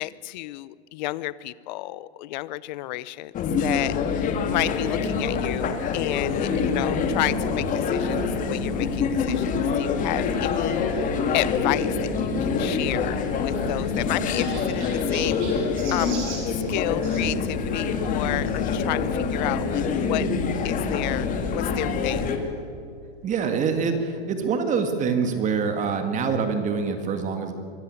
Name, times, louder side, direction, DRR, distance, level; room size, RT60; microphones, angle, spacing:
voice 1, 0.0-11.1 11.3-16.2 16.7-20.2 20.6-22.3, left 17 dB, 45° left, 19 dB, 0.7 m, -31 dB
sound 1, 3.3-22.4, left 5 dB, 25° left, 2.0 m, -25 dB
Chirp tweet, 13.0-17.3 18.4-18.6 19.3-19.4 19.6-19.7 21.0-21.1, right 4 dB, 40° right, 5.4 m, -41 dB
voice 2, 23.2-27.5, right 5 dB, 20° right, 7 dB, 2.0 m, -25 dB
24.0 x 13.0 x 8.5 m, 2.2 s
hypercardioid pair, 130°, 33 cm